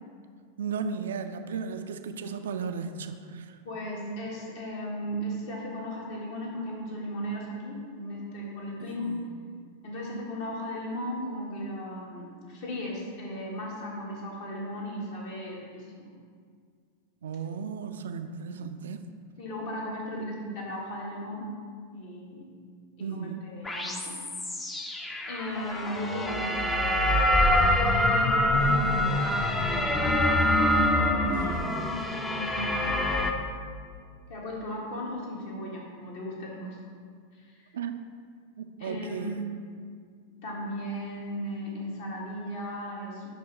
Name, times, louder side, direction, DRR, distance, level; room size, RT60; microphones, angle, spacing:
voice 1, 0.6-3.6 8.8-9.3 17.2-19.0 23.0-23.5 31.3-32.0 37.7-38.0 38.6-39.4, right 6 dB, 65° right, 8 dB, 0.4 m, -35 dB
voice 2, 3.7-9.1 9.8-16.1 19.4-21.5 21.9-22.4 23.0-24.2 25.3-26.9 27.4-27.5 28.5-30.8 32.0-32.9 34.3-36.8 37.3-37.7 38.8-39.3 40.4-43.3, equal, 50° left, -3 dB, 1.7 m, -36 dB
sound 1, 23.6-33.3, left 1 dB, 15° left, 0.6 m, -25 dB
10.0 x 3.6 x 4.3 m, 2.1 s
figure-of-eight pair, 90°, 0 cm